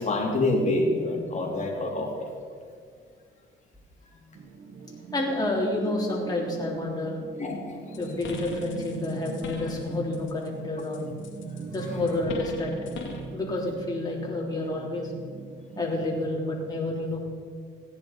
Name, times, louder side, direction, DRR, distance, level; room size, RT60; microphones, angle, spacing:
voice 1, 0.0-2.1 7.4-8.0, left 2 dB, 35° left, -1 dB, 3.3 m, -26 dB
sound 1, 4.3-16.4, right 4 dB, 65° right, 1.6 m, -40 dB
voice 2, 5.1-7.2 8.0-11.1 11.7-12.9 13.3-15.1 15.8-17.2, left 2 dB, 20° left, -3 dB, 3.6 m, -29 dB
sound 2, 7.9-10.5 10.8-13.3, left 5 dB, 75° left, 2.3 m, -42 dB
15.5 x 9.8 x 5.3 m, 2.1 s
cardioid pair, 90°, 20 cm